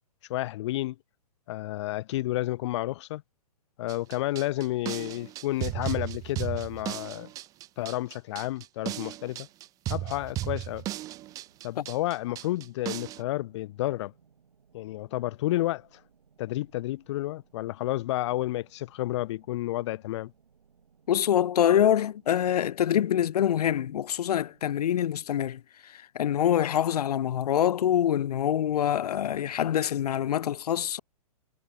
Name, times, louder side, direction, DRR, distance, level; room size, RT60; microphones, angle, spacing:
voice 1, 0.3-1.0 1.5-3.2 3.8-7.3 7.8-9.5 9.9-10.9 11.6-14.1 14.7-15.9 16.4-20.3, left 16 dB, 50° left, 0.8 m, -31 dB
sound 1, 3.9-13.2, right 15 dB, 20° right, 0.4 m, -35 dB
sound 2, 10.5-25.1, right 6 dB, 85° right, 4.8 m, -64 dB
voice 2, 21.1-31.0, left 10 dB, 85° left, 0.4 m, -25 dB
hypercardioid pair, 135°, 19 cm